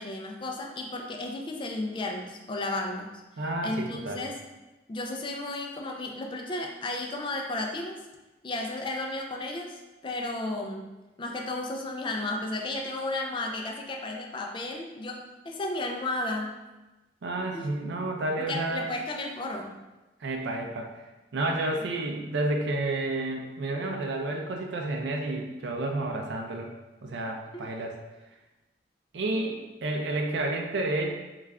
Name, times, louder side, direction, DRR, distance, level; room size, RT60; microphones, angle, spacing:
voice 1, 0.0-3.2 3.6-4.4 4.9-8.0 8.4-10.9 11.2-16.6 17.5-17.7 18.4-19.8 27.5-27.7 29.3-29.4, left 2 dB, 25° left, 2 dB, 0.4 m, -33 dB
voice 2, 3.4-4.2 17.2-18.9 20.2-20.9 21.3-26.7 27.0-28.0 29.1-31.1, right 2 dB, 75° right, 1 dB, 0.4 m, -30 dB
3.2 x 2.4 x 3.4 m, 1.1 s
head